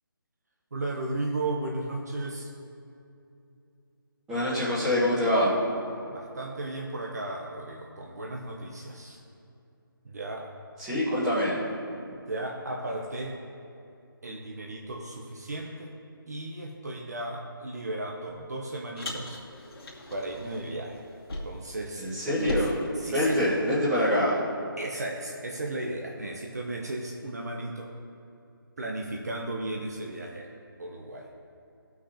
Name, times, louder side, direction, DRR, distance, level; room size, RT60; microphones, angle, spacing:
voice 1, 0.7-2.5 6.1-9.2 10.0-10.5 12.3-13.4 14.2-15.9 16.3-19.4 20.1-21.0 21.4-22.1 22.3-22.6 23.0-23.5 24.8-27.9 28.8-30.5 30.8-31.3, right 2 dB, 45° right, 0 dB, 0.9 m, -35 dB
voice 2, 4.3-5.5 10.8-11.5 22.0-22.7 23.1-24.4, left 1 dB, 5° right, -13 dB, 1.3 m, -25 dB
Car, 19.0-21.8 22.0-23.8, left 1 dB, 85° left, 2.4 m, -38 dB
17.5 x 6.0 x 2.8 m, 2.7 s
hypercardioid pair, 175°, 12 cm